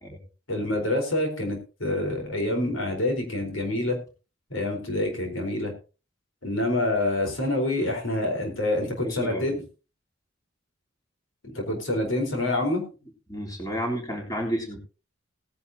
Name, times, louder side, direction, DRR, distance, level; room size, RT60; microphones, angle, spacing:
voice 1, 0.5-4.0 4.5-5.7 6.4-9.6 11.4-12.8, left 1 dB, 80° left, 2 dB, 4.3 m, -27 dB
voice 2, 8.9-9.6 13.3-14.8, equal, 20° left, 0 dB, 3.5 m, -32 dB
18.5 x 10.5 x 2.8 m, 0.33 s
head